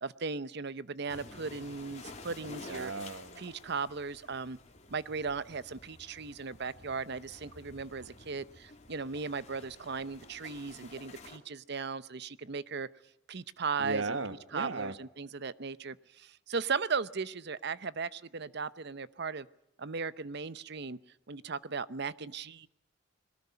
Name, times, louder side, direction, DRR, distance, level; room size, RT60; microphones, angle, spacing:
voice 1, 0.0-2.9 3.4-4.6 4.9-12.9 13.3-14.2 14.5-19.5 19.8-21.0 21.3-22.7, right 5 dB, 55° right, 16 dB, 0.8 m, -37 dB
sound 1, 1.1-11.4, left 3 dB, 35° left, 2.9 m, -51 dB
voice 2, 2.6-3.4 13.8-14.9, right 3 dB, 70° right, 11 dB, 1.5 m, -36 dB
21.5 x 19.0 x 9.7 m, 0.81 s
head